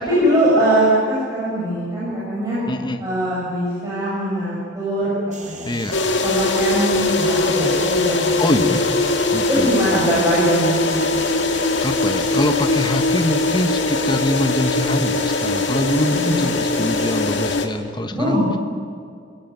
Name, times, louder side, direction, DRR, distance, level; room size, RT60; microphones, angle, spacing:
voice 1, 0.0-2.6 3.0-5.7 6.2-9.2 9.5-11.2 16.0-16.5 18.2-18.5, right 1 dB, 20° right, -8 dB, 6.9 m, -21 dB
voice 2, 2.7-3.0 5.6-6.0 8.4-8.9 9.3-9.7 11.8-18.4, left 1 dB, 25° left, 7 dB, 1.2 m, -23 dB
sound 1, 5.3-17.2, right 6 dB, 40° right, 3.0 m, -39 dB
sound 2, 5.9-17.7, left 2 dB, 70° left, 2.1 m, -21 dB
28.5 x 17.5 x 9.2 m, 2.3 s
head